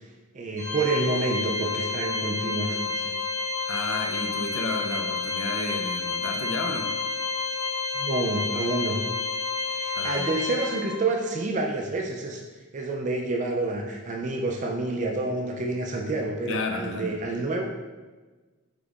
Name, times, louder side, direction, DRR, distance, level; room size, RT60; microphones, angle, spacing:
voice 1, 0.3-3.1 7.9-9.0 9.7-12.4 12.7-17.6, right 2 dB, 35° right, 1 dB, 0.4 m, -28 dB
Organ, 0.6-11.2, left 4 dB, 35° left, 1.4 m, -30 dB
voice 2, 3.7-6.9 9.9-10.4 16.5-17.2, left 3 dB, 60° left, 3 dB, 0.6 m, -32 dB
5.2 x 3.7 x 2.4 m, 1.3 s
head